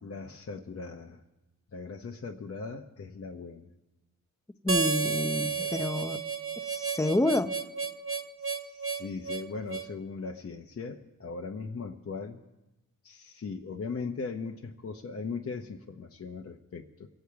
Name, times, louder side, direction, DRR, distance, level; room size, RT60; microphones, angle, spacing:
voice 1, 0.0-1.2 1.7-3.7 5.4-5.9 8.4-12.4 13.0-17.1, left 4 dB, 45° left, 1 dB, 0.8 m, -39 dB
voice 2, 4.6-6.2 6.7-7.6, left 2 dB, 10° left, 9 dB, 0.7 m, -28 dB
Harmonica, 4.7-9.9, right 5 dB, 40° right, 1.0 m, -32 dB
25.0 x 8.6 x 4.7 m, 1.0 s
wide cardioid pair, 100°, 33 cm